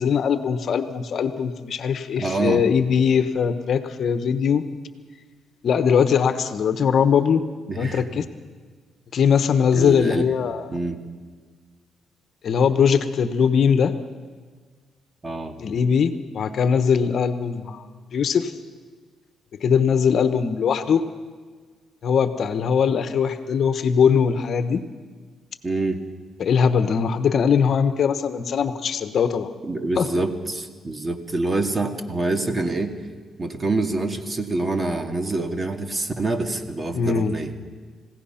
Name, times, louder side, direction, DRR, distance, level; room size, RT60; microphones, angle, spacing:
voice 1, 0.0-4.6 5.6-7.4 7.8-8.2 9.1-10.7 12.4-13.9 15.6-17.8 18.1-18.5 19.6-21.0 22.0-24.8 26.4-29.5 30.0-30.1 36.9-37.4, left 7 dB, 60° left, 10 dB, 1.1 m, -21 dB
voice 2, 2.2-2.7 7.7-8.0 9.7-10.3 10.7-11.0 15.2-15.5 25.6-26.0 29.6-33.0 33.4-37.5, right 2 dB, 25° right, 5 dB, 2.1 m, -26 dB
29.0 x 16.5 x 5.8 m, 1.5 s
cardioid pair, 90°, 0 cm